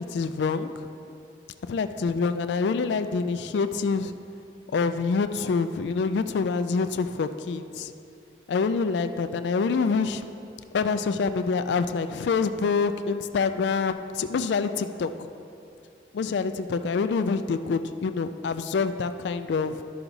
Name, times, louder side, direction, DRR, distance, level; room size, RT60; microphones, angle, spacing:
voice 1, 0.1-0.9 1.7-4.1 4.7-7.9 8.5-10.2 10.7-15.3 16.1-19.8, left 4 dB, 80° left, 10 dB, 0.3 m, -26 dB
11.5 x 5.8 x 4.0 m, 2.6 s
head